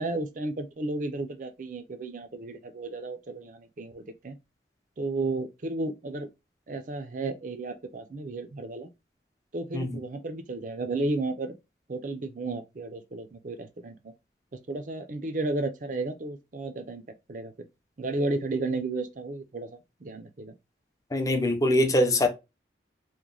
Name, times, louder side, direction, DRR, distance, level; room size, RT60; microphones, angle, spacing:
voice 1, 0.0-4.4 5.0-6.3 6.7-8.9 9.5-11.5 11.9-14.1 14.7-17.0 17.3-17.7 18.0-19.7 20.0-20.5, right 2 dB, 45° right, 0.5 m, -33 dB
voice 2, 21.1-22.3, left 1 dB, 20° left, 0.5 m, -23 dB
3.0 x 2.1 x 3.7 m
head